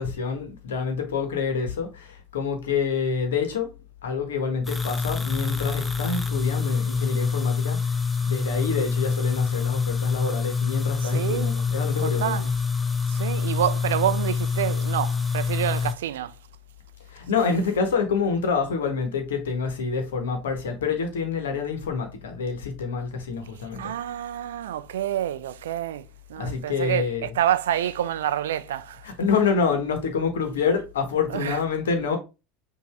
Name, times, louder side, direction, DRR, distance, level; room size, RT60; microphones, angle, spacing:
voice 1, 0.0-2.1 2.3-3.7 4.0-7.8 8.2-12.5 17.1-23.9 26.4-27.4 29.0-32.2, left 5 dB, 70° left, 1.1 m, -27 dB
sound 1, 4.6-15.9, left 5 dB, 10° left, 0.6 m, -26 dB
voice 2, 11.0-11.6 12.0-12.4 13.1-16.3 23.8-29.1 31.3-31.6, right 11 dB, 70° right, 0.3 m, -28 dB
5.4 x 2.6 x 3.3 m
figure-of-eight pair, 75°, 0 cm